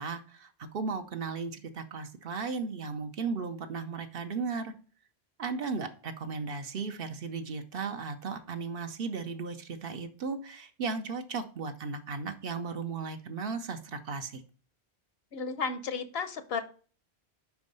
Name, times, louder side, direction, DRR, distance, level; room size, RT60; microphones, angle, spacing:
voice 1, 0.0-4.7 5.4-14.4, right 4 dB, 65° right, 8 dB, 0.9 m, -36 dB
voice 2, 15.3-16.6, left 5 dB, 70° left, 11 dB, 1.0 m, -33 dB
5.3 x 4.7 x 5.2 m, 0.40 s
omnidirectional pair, 1.1 m